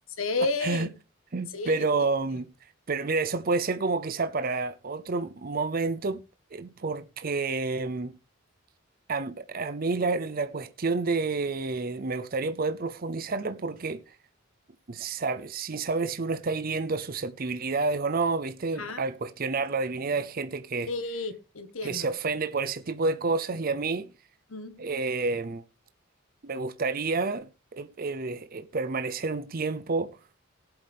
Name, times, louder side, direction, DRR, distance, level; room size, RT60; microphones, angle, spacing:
voice 1, 0.2-0.9 1.5-1.9 18.8-19.0 20.9-22.1 24.5-24.8, left 3 dB, 80° left, 1.5 m, -31 dB
voice 2, 1.3-2.5 2.9-6.2 6.5-8.1 9.1-14.0 14.9-20.9 21.8-24.1 24.8-25.6 26.4-27.5 27.8-30.2, right 3 dB, 45° right, 0.6 m, -29 dB
17.5 x 7.9 x 3.5 m
head